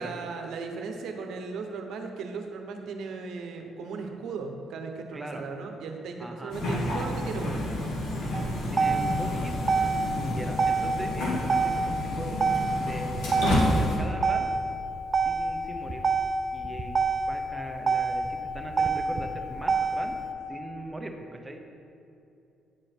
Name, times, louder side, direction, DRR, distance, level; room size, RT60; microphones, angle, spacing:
voice 1, 0.0-7.6, right 4 dB, 75° right, 4 dB, 0.9 m, -37 dB
voice 2, 5.1-5.4 6.2-6.6 8.2-8.3 8.7-9.5 9.9-12.4 12.8-14.5 15.2-16.0 16.5-17.0 17.3-20.2 20.5-21.1 21.4-21.6, right 1 dB, 10° right, 3 dB, 0.9 m, -40 dB
sound 1, 6.5-14.0, left 1 dB, 85° left, 1.7 m, -29 dB
Motor vehicle (road), 8.3-20.3, right 4 dB, 35° right, 0.6 m, -27 dB
9.6 x 4.9 x 4.4 m, 2.6 s
cardioid pair, 90°, 0 cm